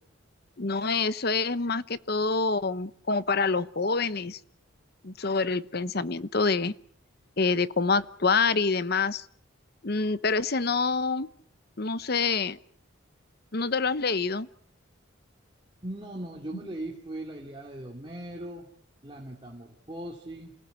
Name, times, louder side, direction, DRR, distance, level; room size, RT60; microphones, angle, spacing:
voice 1, 0.6-4.4 5.0-6.7 7.4-9.3 9.8-11.3 11.8-12.6 13.5-14.5, left 4 dB, 50° left, 15 dB, 1.0 m, -26 dB
voice 2, 15.8-18.7 19.0-20.5, right 1 dB, 25° right, -1 dB, 2.8 m, -39 dB
28.5 x 18.5 x 8.1 m, 0.63 s
head